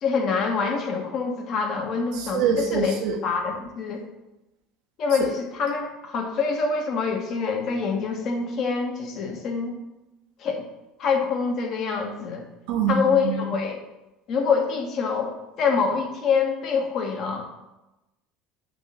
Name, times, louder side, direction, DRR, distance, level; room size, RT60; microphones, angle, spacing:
voice 1, 0.0-3.0 3.2-4.0 5.0-9.8 10.4-10.6 11.0-12.4 12.9-13.8 14.3-17.4, left 5 dB, 55° left, 2 dB, 1.5 m, -25 dB
voice 2, 2.2-3.1 12.7-13.5, right 6 dB, 70° right, 2 dB, 0.8 m, -24 dB
8.6 x 3.0 x 6.3 m, 0.99 s
hypercardioid pair, 75°, 0 cm